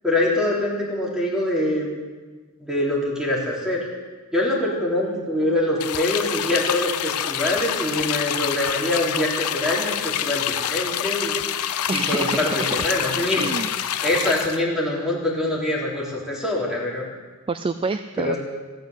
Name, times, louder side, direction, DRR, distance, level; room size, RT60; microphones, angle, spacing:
voice 1, 0.0-1.9 2.6-3.8 4.3-11.4 11.9-13.5 14.0-17.1 18.2-18.4, left 1 dB, 5° right, -4 dB, 3.5 m, -24 dB
sound 1, 5.8-14.6, left 10 dB, 90° left, 0.6 m, -27 dB
voice 2, 11.9-12.9 13.3-14.4 17.5-18.4, right 3 dB, 25° right, 11 dB, 0.4 m, -28 dB
15.0 x 9.3 x 8.1 m, 1.4 s
head